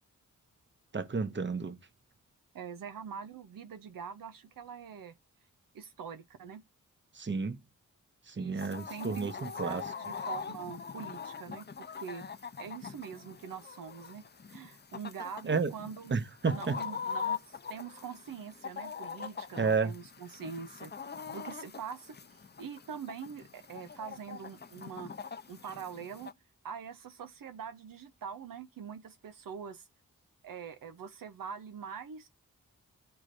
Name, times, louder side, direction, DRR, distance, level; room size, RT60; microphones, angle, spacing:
voice 1, 0.9-1.8 7.1-7.6 8.3-9.8 15.4-15.7 16.1-16.8 19.6-19.9, right 4 dB, 35° right, 0.9 m, -31 dB
voice 2, 2.5-5.2 5.7-6.6 8.4-12.2 12.6-14.2 14.5-16.1 16.5-20.9 21.3-25.1 25.5-26.3 26.6-29.9 30.4-32.3, right 7 dB, 85° right, 0.7 m, -44 dB
Chicken rooster, 8.6-26.3, left 6 dB, 30° left, 0.6 m, -43 dB
13.5 x 4.8 x 2.5 m
cardioid pair, 55°, 33 cm